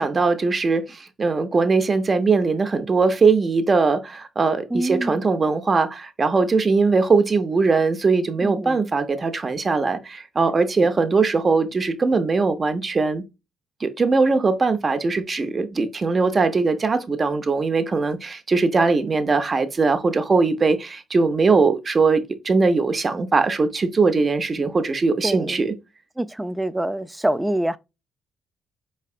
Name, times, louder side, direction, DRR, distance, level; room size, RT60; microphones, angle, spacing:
voice 1, 0.0-13.2 13.8-25.7, right 4 dB, 35° right, 0.7 m, -20 dB
voice 2, 4.7-5.2 8.4-8.8 10.8-10.9 25.2-25.6 26.2-27.8, right 1 dB, 10° right, 0.3 m, -25 dB
4.8 x 3.2 x 2.4 m
cardioid pair, 90°, 0 cm